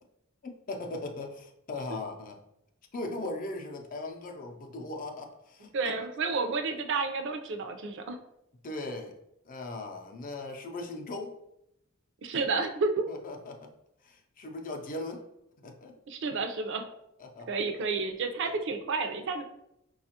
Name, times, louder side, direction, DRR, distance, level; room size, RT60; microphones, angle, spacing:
voice 1, 0.4-2.4 2.9-5.9 8.6-9.1 9.4-11.4 13.1-13.7 14.0-15.3 15.6-15.9 17.2-17.5, left 2 dB, 45° left, 3 dB, 0.5 m, -39 dB
voice 2, 5.7-8.2 12.2-13.0 16.1-16.8 17.5-19.4, right 4 dB, 60° right, 6 dB, 0.5 m, -30 dB
4.9 x 2.3 x 2.8 m, 0.81 s
head